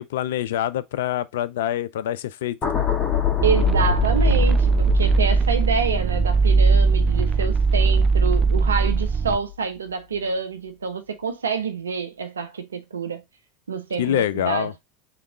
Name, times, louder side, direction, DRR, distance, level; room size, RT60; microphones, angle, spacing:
voice 1, 0.0-2.7 14.0-14.7, left 12 dB, 65° left, 0.4 m, -25 dB
sound 1, 2.6-8.9 9.3-9.6, left 10 dB, 30° left, 1.4 m, -27 dB
sound 2, 3.4-9.4, right 4 dB, 30° right, 0.3 m, -19 dB
voice 2, 3.4-13.2 13.7-14.7, right 5 dB, 80° right, 0.6 m, -27 dB
3.5 x 3.0 x 3.8 m
figure-of-eight pair, 80°, 0 cm